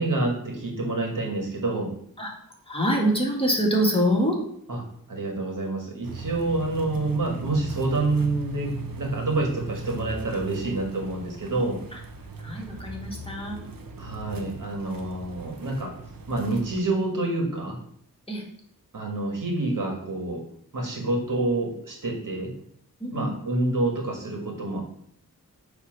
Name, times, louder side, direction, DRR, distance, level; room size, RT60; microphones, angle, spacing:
voice 1, 0.0-1.9 4.7-4.8 5.1-11.8 14.0-15.9 16.3-17.8 18.9-20.4 20.7-22.5 23.1-24.8, right 2 dB, 65° right, 1 dB, 1.8 m, -27 dB
voice 2, 2.7-4.4 11.9-12.0 12.4-13.6 18.3-18.4 23.0-23.3, equal, 15° left, -2 dB, 1.8 m, -25 dB
sound 1, 6.0-16.8, right 3 dB, 85° right, 0.9 m, -38 dB
7.8 x 3.3 x 5.9 m, 0.67 s
wide cardioid pair, 95°, 34 cm